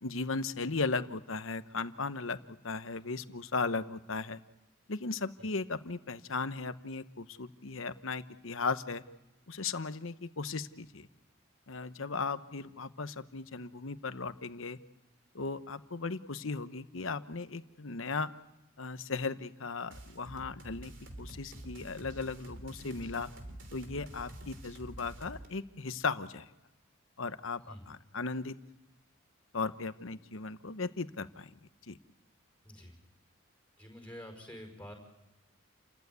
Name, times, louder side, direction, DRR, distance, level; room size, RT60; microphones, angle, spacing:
voice 1, 0.0-4.4 4.9-9.0 9.5-11.1 11.7-14.8 15.3-18.3 18.8-20.9 21.2-23.3 23.7-26.5 27.2-28.6 29.5-31.5 31.9-32.0, left 4 dB, 75° left, 12 dB, 1.0 m, -36 dB
sound 1, 19.9-25.5, right 1 dB, 65° right, 3.3 m, -48 dB
voice 2, 32.6-33.0 33.8-34.9, equal, 10° left, 3 dB, 5.1 m, -47 dB
29.5 x 15.0 x 9.5 m, 1.0 s
head